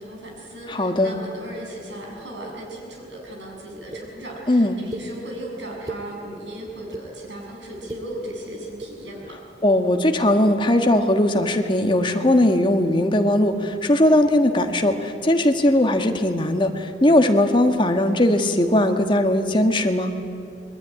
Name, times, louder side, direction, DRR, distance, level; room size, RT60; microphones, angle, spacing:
voice 1, 0.0-9.4, right 1 dB, 80° right, 0 dB, 7.3 m, -36 dB
voice 2, 0.7-1.2 4.5-4.8 9.6-20.1, left 1 dB, 25° left, 5 dB, 1.5 m, -19 dB
sound 1, 3.9-4.0 4.9-5.0 5.7-6.0 6.7-7.1 7.7-8.0 8.7-8.9, right 2 dB, 20° right, 2.3 m, -34 dB
26.5 x 21.0 x 9.8 m, 2.8 s
head